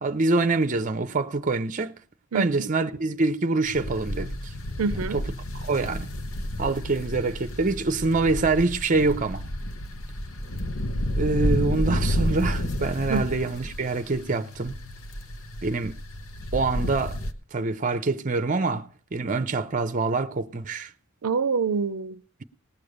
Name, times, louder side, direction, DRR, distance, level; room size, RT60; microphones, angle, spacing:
voice 1, 0.0-2.0 2.3-4.5 5.1-5.2 5.6-6.1 6.6-9.4 11.2-14.8 15.6-15.9 16.5-17.2 17.5-20.9, right 3 dB, 35° right, 0.6 m, -25 dB
voice 2, 2.3-2.7 4.8-5.2 13.1-13.3 21.2-22.2, right 5 dB, 85° right, 0.5 m, -26 dB
sound 1, 3.7-17.3, left 1 dB, 70° left, 1.0 m, -31 dB
18.5 x 7.0 x 6.6 m
head